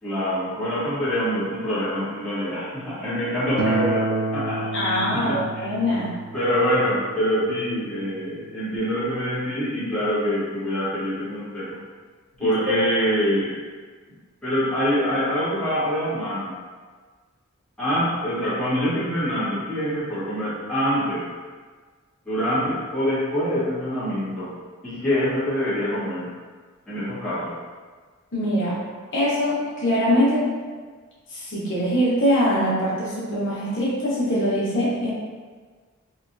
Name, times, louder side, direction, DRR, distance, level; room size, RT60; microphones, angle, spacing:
voice 1, 0.0-6.1 6.3-11.8 12.4-13.6 14.4-16.6 17.8-21.3 22.2-24.5 24.8-26.3 26.9-27.6, equal, 5° left, -13 dB, 1.2 m, -25 dB
Acoustic guitar, 3.6-8.8, right 3 dB, 80° right, 0.4 m, -30 dB
voice 2, 4.7-6.1 12.6-12.7 28.3-28.7 29.1-30.5 31.3-35.1, equal, 60° left, -8 dB, 1.0 m, -23 dB
4.1 x 2.3 x 2.5 m, 1.5 s
head